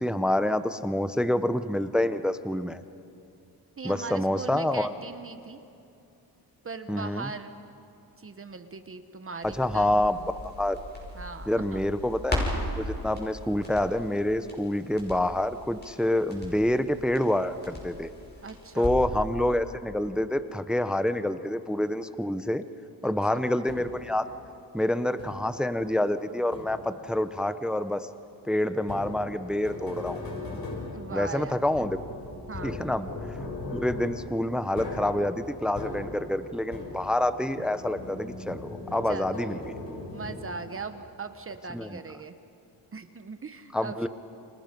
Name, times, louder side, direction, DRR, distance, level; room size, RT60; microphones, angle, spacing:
voice 1, 0.0-2.8 3.8-4.9 6.9-7.3 9.4-10.2 10.6-10.8 11.5-12.4 12.8-18.1 18.7-22.7 23.0-24.3 24.7-28.1 28.5-30.2 31.1-32.0 32.6-33.1 33.7-39.6 41.7-42.0 43.7-44.1, left 1 dB, ahead, 12 dB, 0.6 m, -27 dB
voice 2, 3.8-5.6 6.6-7.6 8.2-10.0 11.1-11.8 18.4-18.9 23.0-23.4 30.9-31.6 32.5-32.8 39.1-39.6 40.1-42.3 42.9-44.1, right 4 dB, 30° right, 9 dB, 1.0 m, -39 dB
Crackle, 9.4-19.2 19.5-19.6, left 1 dB, 25° left, 5.8 m, -37 dB
sound 1, 23.7-24.2 25.2-25.7 26.5-27.1 28.8-37.3 37.6-40.8, left 2 dB, 55° left, 6.8 m, -39 dB
30.0 x 26.0 x 5.3 m, 2.7 s
wide cardioid pair, 140°, 40 cm